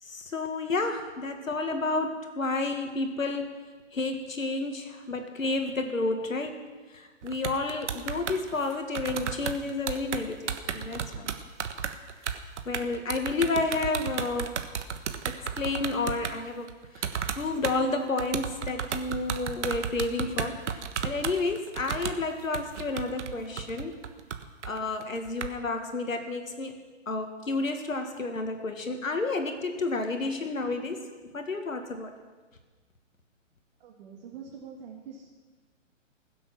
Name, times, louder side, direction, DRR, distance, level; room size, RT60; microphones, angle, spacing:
voice 1, 0.0-3.6 3.9-11.4 12.7-14.6 15.3-16.7 17.0-17.1 17.3-24.0 24.6-26.8 27.1-32.1, left 3 dB, 85° left, 5 dB, 2.2 m, -31 dB
sound 1, 7.2-16.3 16.7-17.8 18.1-25.5, right 7 dB, 65° right, 1.3 m, -33 dB
voice 2, 33.8-35.3, right 6 dB, 45° right, -2 dB, 2.4 m, -44 dB
21.0 x 7.8 x 6.1 m, 1.3 s
hypercardioid pair, 135°, 39 cm